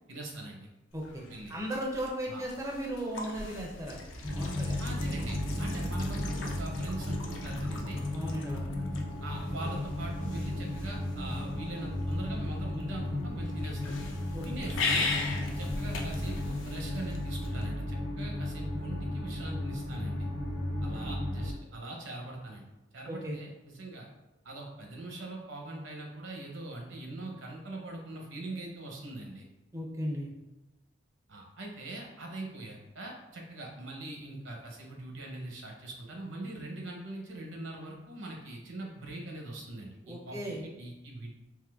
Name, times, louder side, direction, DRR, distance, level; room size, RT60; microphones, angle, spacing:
voice 1, 0.1-0.7 1.3-1.5 2.3-2.4 4.8-8.0 9.2-13.8 14.4-15.1 15.6-20.3 20.8-22.7 22.9-24.1 24.4-29.5 31.3-41.4, right 2 dB, 75° right, 0 dB, 0.7 m, -42 dB
sound 1, 0.9-17.6, left 3 dB, 75° left, 0.5 m, -40 dB
voice 2, 0.9-1.2 1.5-4.0 4.3-4.8 8.1-8.7 14.3-14.4 23.1-23.4 29.7-30.3 40.0-40.6, equal, 15° right, -2 dB, 0.4 m, -36 dB
sound 2, 4.2-21.5, left 1 dB, 60° left, 0.9 m, -34 dB
3.6 x 2.8 x 2.3 m, 1.0 s
head